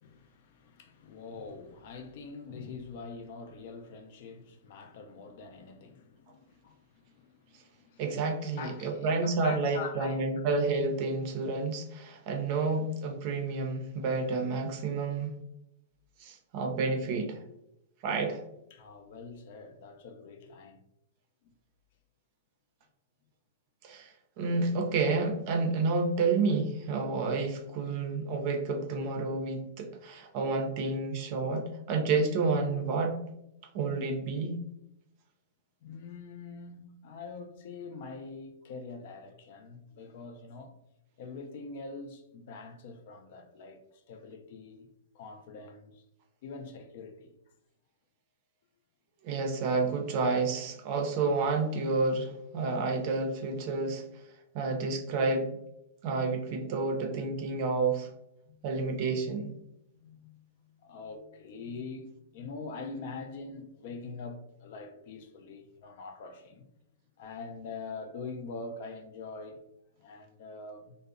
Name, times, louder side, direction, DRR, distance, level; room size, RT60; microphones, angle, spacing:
voice 1, 0.0-8.0 8.4-10.2 18.7-20.8 21.4-21.5 35.8-40.8 41.2-44.9 45.1-46.0 46.4-47.4 58.5-59.0 59.9-66.7 67.2-69.6 70.0-71.0, left 4 dB, 55° left, 0.4 m, -44 dB
voice 2, 8.0-15.3 16.2-17.4 18.0-18.4 23.8-33.2 33.7-34.6 49.2-54.0 54.5-55.6 56.0-58.1 58.6-59.5, right 3 dB, 45° right, 0.5 m, -30 dB
2.6 x 2.0 x 2.4 m
hypercardioid pair, 140°, 0 cm